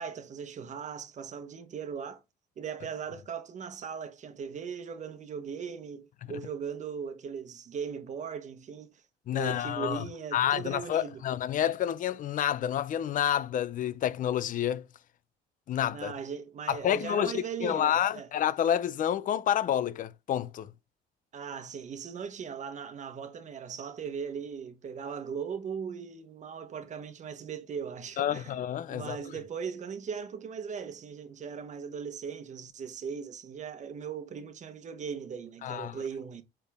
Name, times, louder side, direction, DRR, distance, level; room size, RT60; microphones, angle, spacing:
voice 1, 0.0-2.2 2.6-9.0 9.3-11.2 15.9-18.3 21.3-28.6 28.9-36.4, right 6 dB, 45° right, 1.2 m, -38 dB
voice 2, 9.3-10.0 10.3-14.8 15.7-16.1 16.7-20.7 28.2-29.2 35.6-35.9, left 10 dB, 50° left, 0.6 m, -29 dB
8.4 x 3.7 x 3.6 m
cardioid pair, 110°, 17 cm